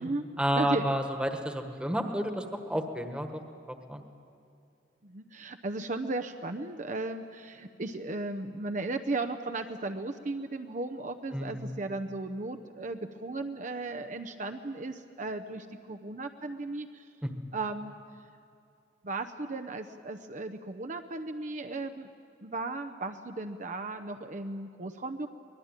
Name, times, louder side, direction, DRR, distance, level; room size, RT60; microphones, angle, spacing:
voice 1, 0.4-3.4 3.7-4.0 11.3-11.7 17.2-17.3, equal, 5° right, 5 dB, 1.5 m, -31 dB
voice 2, 5.0-17.1 17.5-17.9 19.0-22.1 22.4-25.3, right 2 dB, 45° right, 7 dB, 0.8 m, -35 dB
23.5 x 20.0 x 9.0 m, 2.5 s
head